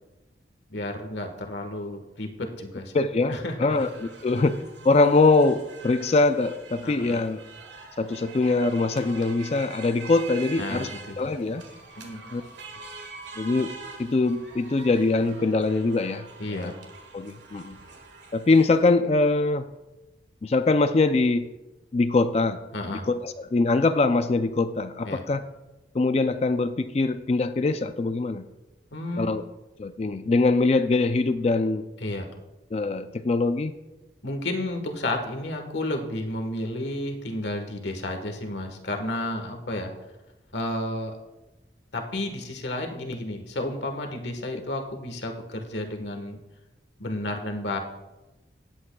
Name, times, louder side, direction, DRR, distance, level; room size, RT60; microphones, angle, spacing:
voice 1, 0.7-2.9 3.3-3.8 6.8-7.3 10.6-11.1 12.0-12.3 16.4-16.7 22.7-23.1 25.0-25.2 28.9-29.3 32.0-32.3 34.2-39.9 40.5-41.2 41.9-46.4 47.0-47.8, left 1 dB, 75° left, 4 dB, 1.3 m, -32 dB
voice 2, 2.9-7.4 8.0-10.9 11.2-11.6 12.3-12.4 13.4-13.7 14.0-16.7 17.1-17.8 18.3-19.7 20.4-21.5 21.9-22.6 22.9-25.4 25.9-28.5 29.2-29.4 29.8-31.9 32.7-33.7, left 3 dB, 35° left, 10 dB, 0.3 m, -23 dB
sound 1, 3.7-18.9, right 4 dB, 75° right, 1.7 m, -44 dB
18.5 x 8.4 x 2.3 m, 1.0 s
head